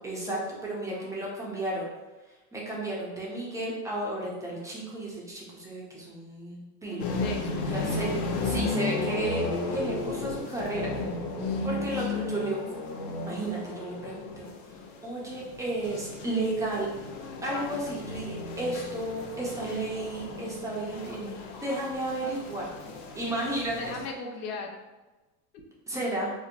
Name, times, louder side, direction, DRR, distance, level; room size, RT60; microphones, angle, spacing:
voice 1, 0.0-1.9 2.3-7.0 7.7-8.1 8.4-9.4 9.7-10.9 11.6-12.6 13.2-16.9 17.4-22.7 23.1-23.8 25.9-26.3, right 2 dB, 5° right, -4 dB, 0.4 m, -33 dB
voice 2, 6.9-7.7 11.4-11.7 12.0-12.1 23.7-24.7, left 4 dB, 85° left, 2 dB, 0.7 m, -38 dB
sound 1, 7.0-24.1, left 3 dB, 50° left, 0.6 m, -34 dB
4.4 x 2.1 x 2.5 m, 1.2 s
supercardioid pair, 125°, 46 cm